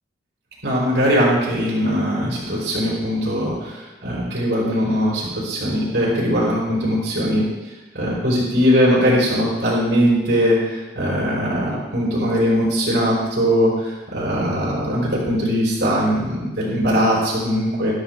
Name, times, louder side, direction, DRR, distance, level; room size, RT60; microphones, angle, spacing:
voice 1, 0.6-7.5 7.9-17.9, equal, 90° right, -5 dB, 4.9 m, -20 dB
23.0 x 12.5 x 2.3 m, 1.1 s
head